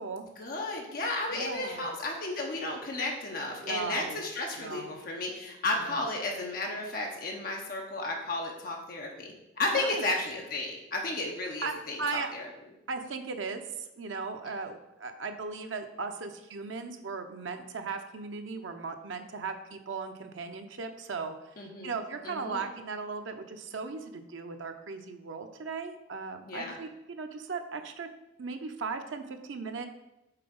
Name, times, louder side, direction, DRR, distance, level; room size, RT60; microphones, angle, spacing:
voice 1, 0.4-12.5 21.6-21.9 22.2-22.7 26.5-26.8, left 2 dB, 50° left, 0 dB, 0.8 m, -33 dB
voice 2, 1.3-1.9 3.6-4.2 4.6-5.0 5.8-6.0 9.7-10.0 11.6-12.3 12.9-13.6 13.9-21.3 21.8-28.1 28.4-29.9, right 4 dB, 85° right, 6 dB, 0.6 m, -37 dB
5.8 x 3.8 x 5.2 m, 0.92 s
head